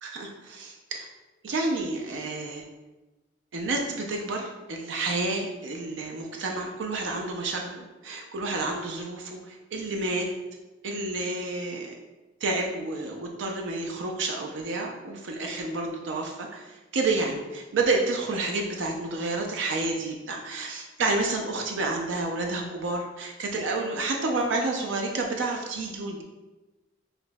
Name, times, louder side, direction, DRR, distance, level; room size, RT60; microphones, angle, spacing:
voice 1, 0.0-1.1 1.4-2.6 3.5-10.3 10.8-11.9 12.4-26.2, right 2 dB, 75° right, 1 dB, 0.4 m, -30 dB
5.8 x 2.6 x 2.2 m, 1.1 s
head